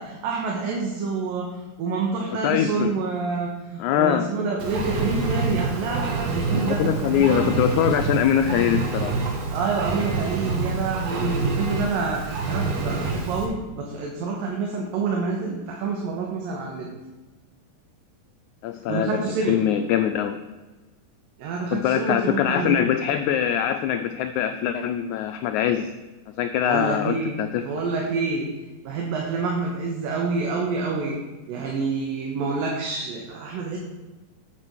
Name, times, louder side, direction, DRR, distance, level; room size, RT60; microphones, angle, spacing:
voice 1, 0.0-7.5 9.5-16.9 18.9-19.6 21.4-22.8 26.6-31.2 31.5-33.8, right 4 dB, 80° right, -1 dB, 3.0 m, -28 dB
voice 2, 2.4-3.0 3.8-4.3 6.5-9.1 18.6-19.2 19.5-20.4 21.7-25.9 26.4-27.7, left 10 dB, 90° left, 8 dB, 1.7 m, -23 dB
Engine, 4.6-13.5, right 4 dB, 55° right, 2.2 m, -27 dB
8.7 x 7.7 x 6.1 m, 1.2 s
omnidirectional pair, 3.9 m